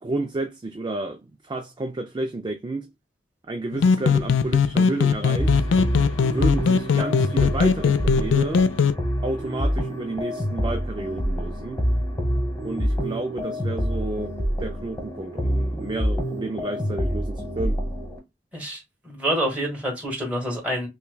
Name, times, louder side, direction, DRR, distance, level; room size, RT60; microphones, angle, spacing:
voice 1, 0.0-2.9 3.5-5.6 6.3-8.7 9.2-11.8 12.6-14.3 14.6-17.8, right 2 dB, 25° right, 0.4 m, -31 dB
sound 1, 3.7-8.9, left 5 dB, 90° left, 0.4 m, -20 dB
sound 2, 5.4-18.2, equal, 20° left, 1.1 m, -27 dB
voice 2, 18.5-20.9, equal, 10° right, 1.7 m, -27 dB
5.6 x 2.2 x 2.2 m
head